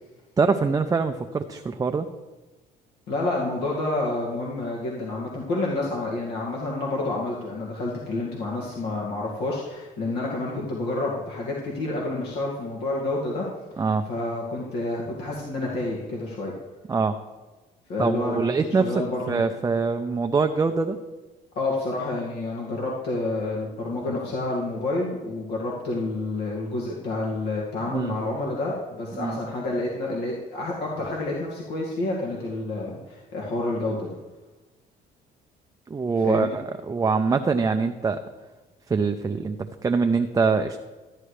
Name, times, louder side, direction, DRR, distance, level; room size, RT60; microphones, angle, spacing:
voice 1, 0.4-2.1 13.8-14.1 16.9-17.2 18.0-21.0 27.9-28.2 29.2-29.4 35.9-38.2 38.9-40.8, right 4 dB, 20° right, 6 dB, 0.5 m, -24 dB
voice 2, 3.1-13.5 14.1-16.5 17.9-18.4 18.7-19.5 21.6-34.2 36.2-36.6, left 2 dB, 75° left, -4 dB, 2.1 m, -29 dB
14.0 x 9.9 x 3.3 m, 1.2 s
cardioid pair, 110°, 17 cm